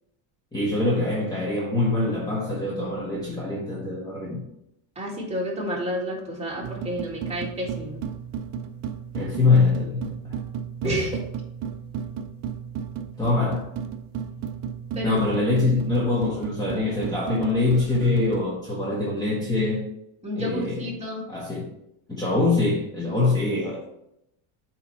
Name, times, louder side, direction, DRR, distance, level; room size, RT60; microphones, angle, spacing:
voice 1, 0.5-4.4 9.1-10.4 10.8-11.1 13.2-13.7 15.0-19.9 20.4-20.9 21.3-21.7 22.1-23.8, left 3 dB, 10° left, -4 dB, 0.9 m, -24 dB
voice 2, 5.0-8.1 10.8-11.2 14.9-15.2 20.2-21.2, equal, 15° right, -4 dB, 1.9 m, -30 dB
sound 1, 6.6-18.5, right 7 dB, 45° right, 0.5 m, -34 dB
8.0 x 3.0 x 4.3 m, 0.80 s
cardioid pair, 140°, 49 cm